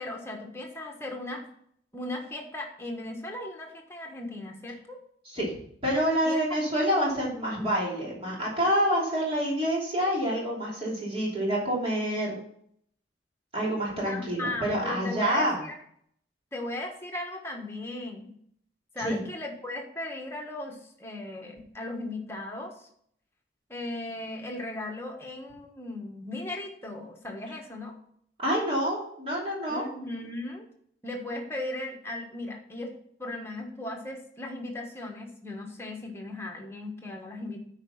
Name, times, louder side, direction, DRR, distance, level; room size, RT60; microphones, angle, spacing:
voice 1, 0.0-1.5 1.9-5.0 6.2-6.4 14.0-15.7 16.5-18.3 18.9-22.9 23.7-27.9 29.7-30.7 31.0-32.9 33.2-37.6, left 2 dB, 15° left, 1 dB, 1.4 m, -37 dB
voice 2, 5.8-12.3 13.5-15.6 19.0-19.2 28.4-29.9, equal, 35° right, -5 dB, 3.0 m, -27 dB
9.4 x 4.9 x 5.6 m, 0.65 s
head